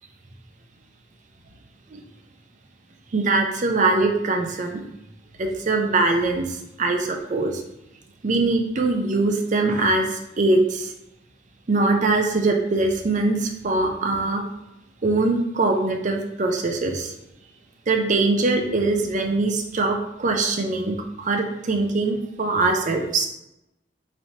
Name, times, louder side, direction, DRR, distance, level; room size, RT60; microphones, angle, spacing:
voice 1, 3.1-4.8 5.4-7.6 8.2-10.9 11.7-14.4 15.0-17.1 17.9-23.3, right 3 dB, 45° right, 3 dB, 0.5 m, -22 dB
4.3 x 3.1 x 2.8 m, 0.86 s
head